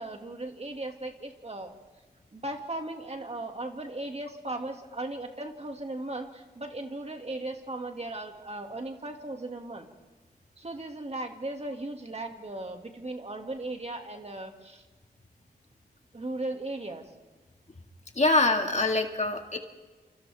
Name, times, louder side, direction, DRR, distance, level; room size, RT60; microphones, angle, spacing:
voice 1, 0.0-1.8 2.3-9.9 10.6-14.8 16.1-17.1, right 2 dB, 40° right, 3 dB, 2.4 m, -37 dB
voice 2, 18.2-19.6, left 2 dB, 40° left, 4 dB, 2.2 m, -24 dB
28.0 x 27.5 x 3.6 m, 1.3 s
cardioid pair, 55°, 17 cm